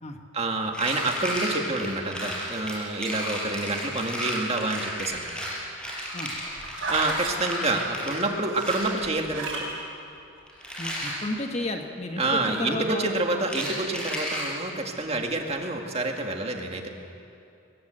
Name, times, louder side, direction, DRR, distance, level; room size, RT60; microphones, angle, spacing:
voice 1, 0.3-5.3 6.9-9.7 12.2-16.9, right 2 dB, 30° right, 2 dB, 2.0 m, -28 dB
sound 1, 0.7-8.3 8.6-9.0 10.5-11.2 13.4-14.5, equal, 5° left, 5.1 m, -33 dB
sound 2, 5.9-7.3 8.5-9.7 10.4-10.5, right 2 dB, 70° right, 6.8 m, -32 dB
voice 2, 10.8-13.5, left 2 dB, 30° left, 4 dB, 1.4 m, -33 dB
22.5 x 21.0 x 7.8 m, 2.7 s
head